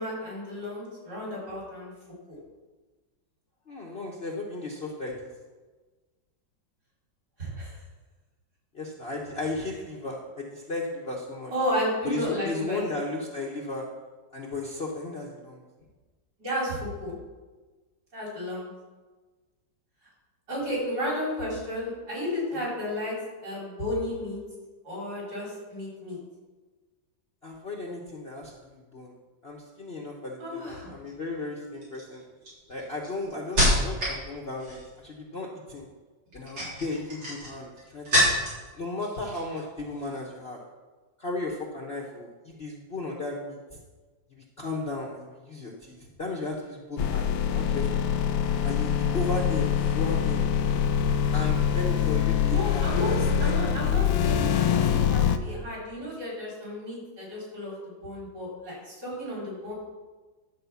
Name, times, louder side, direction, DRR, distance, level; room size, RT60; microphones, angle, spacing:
voice 1, 0.0-1.9 2.3-2.4 7.4-7.8 11.5-12.9 16.4-17.1 18.1-18.7 20.5-23.1 23.4-24.4 24.8-26.2 30.4-30.9 52.4-53.1 53.4-59.7, left 1 dB, 55° right, -5 dB, 4.6 m, -32 dB
voice 2, 3.7-5.3 8.7-11.5 12.0-13.9 14.3-15.6 22.5-22.7 27.4-29.1 29.4-32.2 32.7-35.9 36.3-38.2 38.8-40.6 41.2-43.6 44.3-48.0 48.6-50.5 51.3-53.5, left 2 dB, 40° left, -2 dB, 1.0 m, -35 dB
sound 1, 30.8-31.1 31.8-34.2 34.5-35.0 36.3-38.7 39.0-39.6 39.9-40.2, equal, 75° right, 4.3 m, -27 dB
sound 2, 47.0-55.4, left 8 dB, 85° left, 1.4 m, -24 dB
11.0 x 4.9 x 7.0 m, 1.3 s
omnidirectional pair, 2.1 m